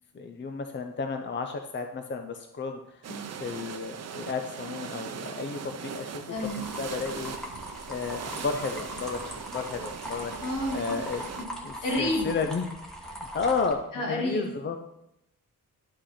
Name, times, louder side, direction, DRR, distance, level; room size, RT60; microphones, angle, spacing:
voice 1, 0.1-3.0 3.4-6.2 6.6-7.3 7.9-10.3 10.7-11.3 11.6-12.7 13.1-14.8, left 4 dB, 35° left, 6 dB, 0.6 m, -32 dB
sound 1, 3.0-11.5, right 7 dB, 50° right, 0.6 m, -40 dB
voice 2, 6.3-6.7 10.4-11.0 11.4-11.5 11.8-12.4 13.9-14.6, left 1 dB, 70° left, -2 dB, 2.4 m, -30 dB
sound 2, 6.4-13.7, equal, ahead, 1.4 m, -40 dB
10.5 x 5.0 x 4.3 m, 0.83 s
wide cardioid pair, 115°, 33 cm